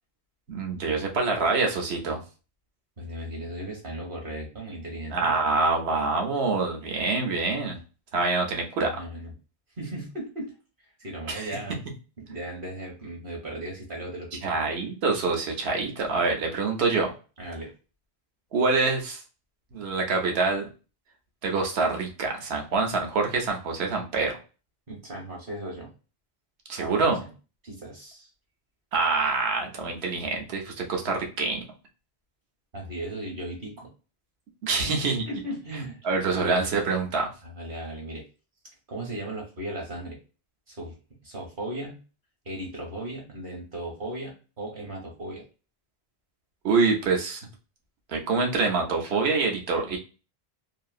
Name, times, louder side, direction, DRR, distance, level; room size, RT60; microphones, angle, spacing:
voice 1, 0.5-2.2 5.1-7.8 8.1-8.9 11.3-11.6 14.4-17.1 18.5-19.2 19.7-20.7 21.4-24.3 26.7-27.2 28.9-31.6 34.6-35.2 36.0-37.3 46.6-47.4 48.1-50.0, right 4 dB, 70° right, 2 dB, 1.1 m, -25 dB
voice 2, 3.0-5.3 8.8-9.3 9.8-10.5 11.0-11.9 12.2-14.5 17.4-17.7 24.9-25.9 26.8-27.3 27.6-28.3 32.7-33.9 34.8-36.0 36.3-36.6 37.4-38.2 38.9-40.2 40.7-41.0 41.2-42.0 42.4-45.4, right 1 dB, 55° right, 0 dB, 1.2 m, -36 dB
3.0 x 2.7 x 2.3 m, 0.34 s
omnidirectional pair, 1.1 m